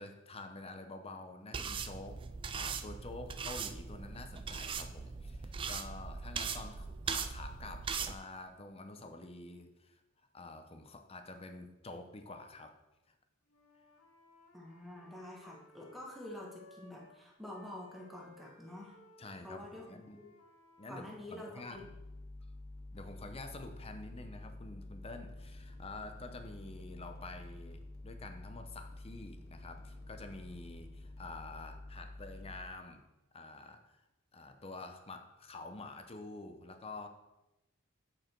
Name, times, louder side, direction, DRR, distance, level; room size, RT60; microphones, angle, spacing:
voice 1, 0.0-2.2 2.5-10.0 10.3-12.8 13.1-13.2 19.2-20.2 20.8-21.8 22.9-33.0 33.3-34.1 34.3-37.1, left 2 dB, 25° left, 7 dB, 0.7 m, -48 dB
sound 1, 1.5-8.1, right 6 dB, 25° right, 0.3 m, -40 dB
Wind instrument woodwind instrument, 13.5-17.2 17.5-21.3, left 1 dB, 80° left, 1.3 m, -61 dB
voice 2, 14.5-18.9 19.4-20.3 20.9-21.9, left 1 dB, ahead, -3 dB, 1.4 m, -48 dB
sound 2, 21.7-32.6, left 2 dB, 65° left, 1.3 m, -49 dB
8.8 x 4.9 x 4.5 m, 0.98 s
head